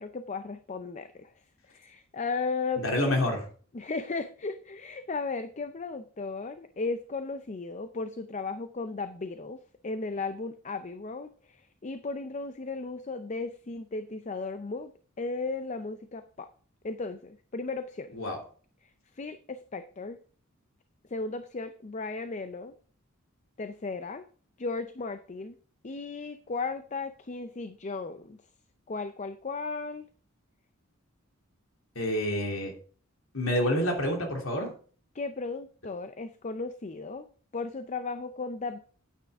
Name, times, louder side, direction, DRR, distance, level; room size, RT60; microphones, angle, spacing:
voice 1, 0.0-1.3 1.7-2.8 3.7-14.9 15.2-16.5 16.8-18.1 18.8-20.2 21.1-22.7 23.6-24.2 24.6-25.6 25.8-28.4 28.9-30.1 35.1-37.3 37.5-38.8, left 3 dB, 35° left, 10 dB, 0.5 m, -35 dB
voice 2, 2.8-3.5 18.1-18.4 31.9-32.7 33.3-34.7, left 1 dB, 75° left, 1 dB, 3.0 m, -28 dB
9.3 x 9.3 x 3.6 m, 0.43 s
head